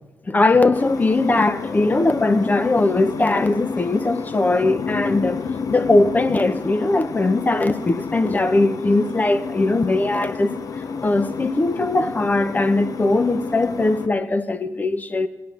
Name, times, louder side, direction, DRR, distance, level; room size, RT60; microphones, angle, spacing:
voice 1, 0.3-5.4 5.7-10.5 11.0-15.3, left 2 dB, 25° left, 1.0 m, -20 dB
sound 1, 0.7-14.1, left 5 dB, 60° left, 0.8 m, -30 dB
17.5 x 9.5 x 7.2 m
cardioid pair, 85°, 7 cm